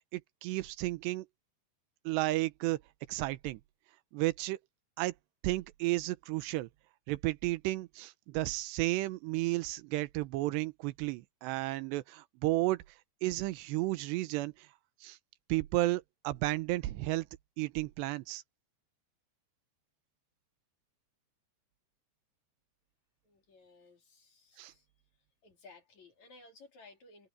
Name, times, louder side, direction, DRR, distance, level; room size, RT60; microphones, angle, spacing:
voice 1, 0.1-1.3 2.1-2.8 3.1-3.6 4.1-4.6 5.0-5.1 5.4-6.7 7.1-12.8 13.2-14.7 15.0-15.2 15.5-17.3 17.6-18.4 24.6-24.7, right 18 dB, 90° right, 3.0 m, -33 dB
voice 2, 23.2-24.9 25.4-27.3, left 3 dB, 45° left, 4.2 m, -57 dB
omnidirectional pair, 4.9 m